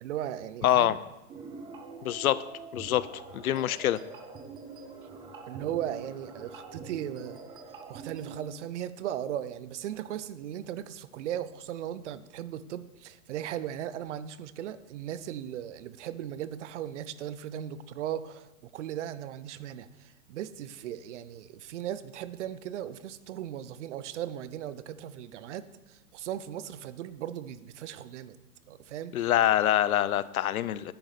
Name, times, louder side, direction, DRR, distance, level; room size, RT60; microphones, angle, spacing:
voice 1, 0.0-1.0 5.5-7.4 7.9-28.4 28.7-29.3, right 11 dB, 55° right, 15 dB, 0.7 m, -37 dB
voice 2, 0.6-1.0 2.0-2.5 2.7-3.1 3.3-4.0 29.1-30.9, left 12 dB, 75° left, 17 dB, 0.6 m, -25 dB
sound 1, 1.3-8.4, right 4 dB, 10° right, 0.5 m, -45 dB
10.5 x 6.3 x 5.1 m, 0.98 s
hypercardioid pair, 130°, 44 cm